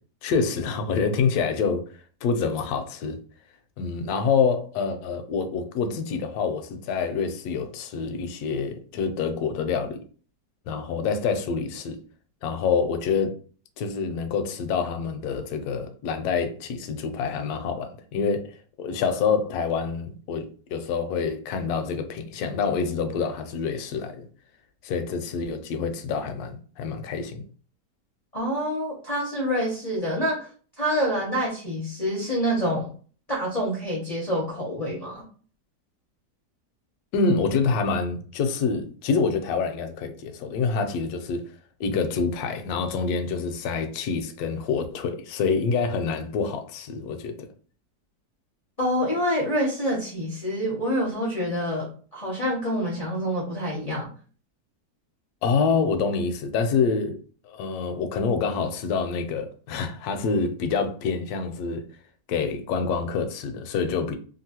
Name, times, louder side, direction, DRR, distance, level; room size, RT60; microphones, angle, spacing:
voice 1, 0.2-1.8 2.2-3.2 3.8-10.0 10.7-12.0 12.4-13.3 13.8-24.3 24.8-27.4 37.1-41.5 41.8-47.3 55.4-57.2 57.4-61.8 62.3-64.2, left 5 dB, 75° left, 1.0 m, -26 dB
voice 2, 28.3-30.5 30.8-32.9 33.3-35.2 48.8-54.1, equal, 45° left, 0.5 m, -27 dB
2.9 x 2.5 x 2.8 m
omnidirectional pair, 1.8 m